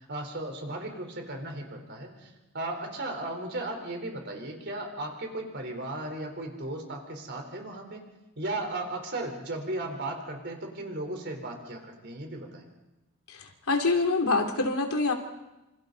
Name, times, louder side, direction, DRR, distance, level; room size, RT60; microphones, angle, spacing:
voice 1, 0.1-8.0 8.4-12.6, right 2 dB, 50° right, 3 dB, 4.1 m, -36 dB
voice 2, 13.3-15.1, left 3 dB, 85° left, 3 dB, 3.0 m, -26 dB
27.5 x 27.0 x 4.1 m, 0.99 s
head